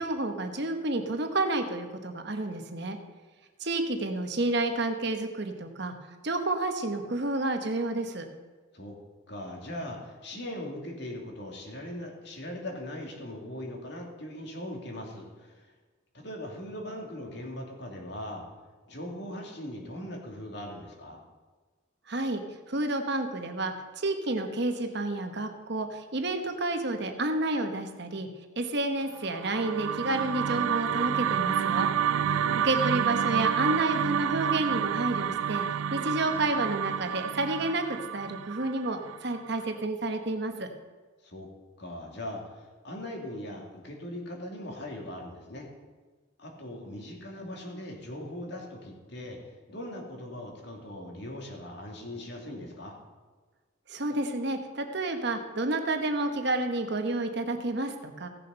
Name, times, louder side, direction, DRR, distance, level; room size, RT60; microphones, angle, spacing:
voice 1, 0.0-3.0 3.6-5.9 6.2-8.2 22.1-28.3 28.6-31.9 32.6-35.6 35.9-37.8 38.1-40.7 53.9-58.3, right 2 dB, 55° right, 6 dB, 1.1 m, -30 dB
voice 2, 9.3-15.7 16.1-18.5 18.9-21.2 32.2-32.8 41.2-41.5 41.8-45.7 46.4-53.0, left 1 dB, 55° left, 0 dB, 2.6 m, -40 dB
sound 1, 29.2-39.5, right 9 dB, 75° right, 0.3 m, -29 dB
16.5 x 6.8 x 5.7 m, 1.4 s
head